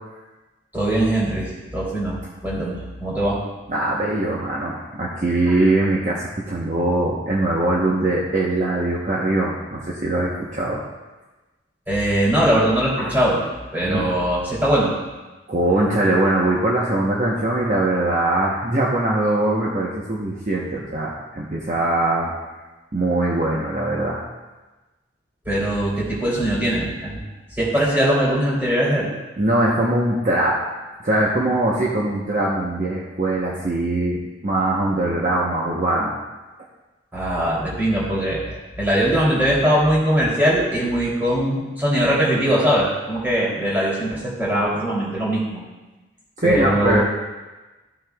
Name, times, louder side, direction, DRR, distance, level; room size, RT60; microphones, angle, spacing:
voice 1, 0.7-2.2 2.4-3.4 11.9-13.4 13.7-14.9 25.4-27.2 27.6-29.1 37.1-45.6 46.4-47.0, right 1 dB, 10° right, -7 dB, 2.9 m, -21 dB
voice 2, 3.7-10.8 13.0-13.1 13.8-14.1 15.5-22.3 22.9-24.2 29.4-30.6 31.0-36.2 46.4-47.0, right 1 dB, 40° right, -5 dB, 0.9 m, -21 dB
14.0 x 6.3 x 2.3 m, 1.2 s
head